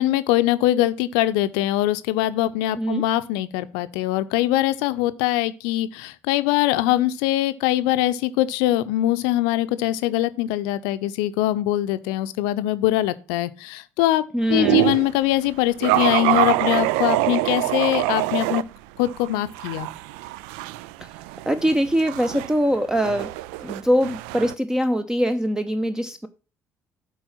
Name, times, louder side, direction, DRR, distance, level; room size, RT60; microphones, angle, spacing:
voice 1, 0.0-14.2 14.5-18.6 19.0-19.9, left 15 dB, 65° left, 0.6 m, -22 dB
voice 2, 14.3-14.8 21.5-23.3 23.6-26.3, equal, 10° right, 0.7 m, -22 dB
sound 1, 14.5-15.1 15.8-18.6 19.0-24.5, right 17 dB, 65° right, 0.3 m, -25 dB
7.9 x 4.8 x 5.6 m
figure-of-eight pair, 50°, 8 cm